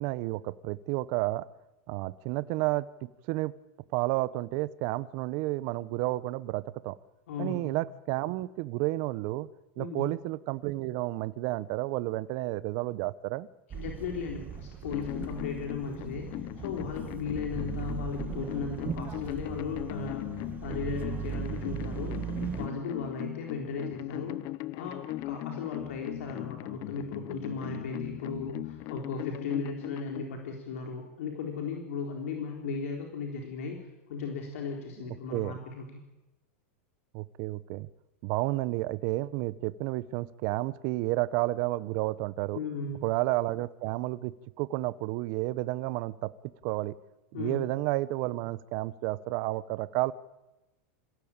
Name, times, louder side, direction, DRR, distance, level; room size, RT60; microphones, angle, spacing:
voice 1, 0.0-1.5 1.9-3.5 3.9-7.0 7.4-9.5 9.8-13.5 35.1-35.6 37.1-37.9 38.2-42.6 43.0-46.3 46.6-46.9 47.4-50.1, right 18 dB, 50° right, 16 dB, 0.9 m, -31 dB
voice 2, 7.3-7.7 9.8-10.1 13.7-24.4 24.8-33.8 34.1-35.9 42.5-43.0 47.3-47.6, left 5 dB, 75° left, 2 dB, 4.1 m, -36 dB
sound 1, 13.7-22.7, right 8 dB, 25° right, 1.2 m, -38 dB
sound 2, 14.9-30.2, left 18 dB, 45° left, 0.7 m, -39 dB
26.0 x 16.0 x 8.9 m, 1.0 s
supercardioid pair, 130°, 7 cm